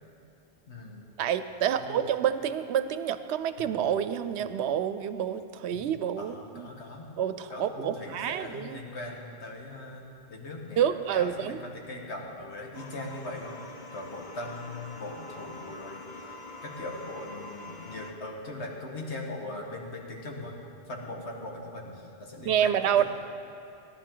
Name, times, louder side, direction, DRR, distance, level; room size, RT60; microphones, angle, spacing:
voice 1, 0.7-1.1 1.7-2.0 3.6-3.8 5.7-5.9 6.2-7.1 7.5-13.6 13.9-16.1 16.6-20.6 20.9-23.1, left 2 dB, 80° left, 0 dB, 1.8 m, -40 dB
voice 2, 1.2-6.7 7.2-8.8 10.8-11.6 22.5-23.0, right 9 dB, 75° right, 12 dB, 0.9 m, -28 dB
sound 1, 12.7-18.1, left 2 dB, 45° left, 0.9 m, -45 dB
17.5 x 11.0 x 3.9 m, 2.6 s
omnidirectional pair, 1.1 m